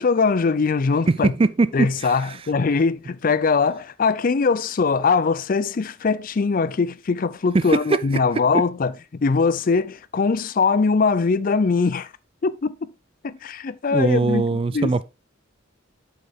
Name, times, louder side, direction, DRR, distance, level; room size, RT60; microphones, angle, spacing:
voice 1, 0.0-1.3 1.7-12.1 12.4-12.9 13.2-14.4 14.7-14.9, left 4 dB, 45° left, 0.4 m, -21 dB
voice 2, 1.1-2.1 7.5-8.1 13.9-15.0, right 3 dB, 30° right, 0.4 m, -21 dB
7.6 x 5.6 x 3.5 m
head